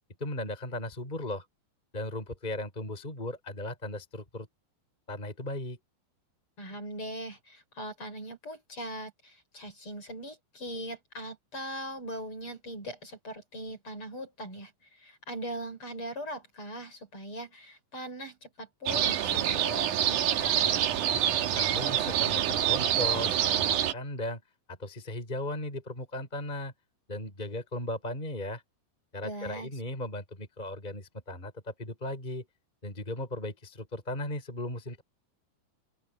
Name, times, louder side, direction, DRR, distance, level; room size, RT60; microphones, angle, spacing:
voice 1, 0.2-1.5 1.9-4.5 5.1-5.8 21.5-23.4 23.7-24.4 24.7-26.7 27.1-28.6 29.1-32.5 32.8-35.0, left 1 dB, 10° left, 4.6 m, -36 dB
voice 2, 6.6-20.9 29.2-29.7, equal, 30° left, 6.0 m, -40 dB
sound 1, 18.9-23.9, right 10 dB, 65° right, 2.1 m, -26 dB
open air
omnidirectional pair, 5.3 m